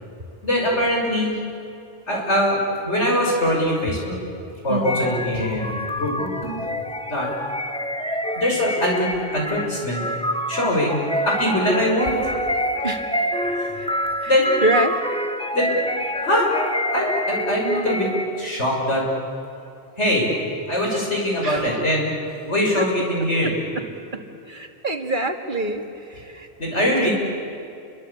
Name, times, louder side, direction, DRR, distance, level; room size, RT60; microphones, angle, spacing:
voice 1, 0.4-1.3 2.1-4.2 4.6-6.7 7.1-7.3 8.4-10.0 10.5-12.2 13.4-13.7 14.3-14.5 15.5-15.8 16.2-16.5 16.9-18.1 18.4-19.1 20.0-20.3 20.7-22.1 22.5-23.5 26.6-27.1, left 1 dB, 80° left, -2 dB, 6.7 m, -22 dB
sound 1, 4.8-18.5, equal, 5° left, 1.2 m, -27 dB
voice 2, 14.2-15.0 21.4-21.7 22.8-22.9 23.4-23.9 24.1-26.5, right 2 dB, 45° right, 5 dB, 2.0 m, -26 dB
29.5 x 24.0 x 8.5 m, 2.6 s
omnidirectional pair, 1.2 m